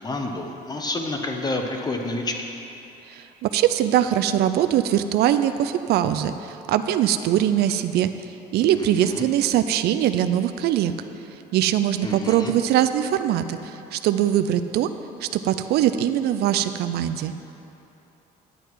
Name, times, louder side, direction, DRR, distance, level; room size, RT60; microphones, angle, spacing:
voice 1, 0.0-2.5 8.7-9.2 12.0-12.5, left 2 dB, 25° left, 3 dB, 1.0 m, -29 dB
voice 2, 3.1-8.1 8.5-10.9 11.3-14.9 15.2-17.4, right 11 dB, 75° right, 10 dB, 0.5 m, -22 dB
10.5 x 7.9 x 4.6 m, 2.9 s
cardioid pair, 110°, 17 cm